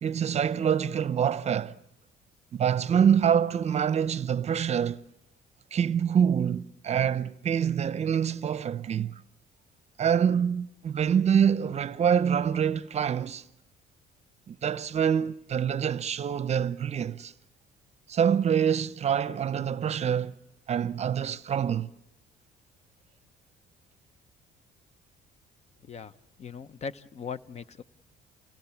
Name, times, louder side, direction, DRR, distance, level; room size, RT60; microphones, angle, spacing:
voice 1, 0.0-1.8 2.5-5.0 5.7-9.2 10.0-13.4 14.5-17.3 18.1-20.4 20.7-21.9, right 8 dB, 40° right, 0.7 m, -26 dB
voice 2, 26.4-27.8, left 5 dB, 40° left, 0.8 m, -39 dB
29.0 x 18.0 x 7.2 m
cardioid pair, 110°, 17 cm